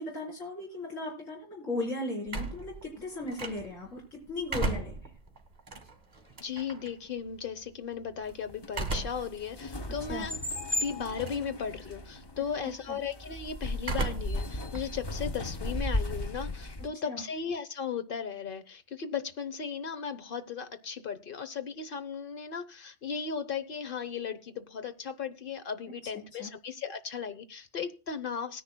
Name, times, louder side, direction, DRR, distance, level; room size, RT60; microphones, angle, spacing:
voice 1, 0.0-5.1 10.1-10.3 12.6-13.0 17.1-17.2 26.3-26.5, left 2 dB, 90° left, -2 dB, 4.2 m, -37 dB
sound 1, 2.3-3.9 4.3-6.9 8.7-9.4 9.9-10.0 11.0-11.5 11.8-12.2 13.8-14.5 14.7-16.2, right 3 dB, 35° right, 1.7 m, -35 dB
voice 2, 6.4-10.4 10.7-28.6, left 6 dB, 50° left, 10 dB, 1.0 m, -36 dB
sound 2, 8.3-16.9, left 1 dB, 30° left, 0.5 m, -36 dB
19.5 x 10.0 x 2.2 m, 0.31 s
omnidirectional pair, 1.3 m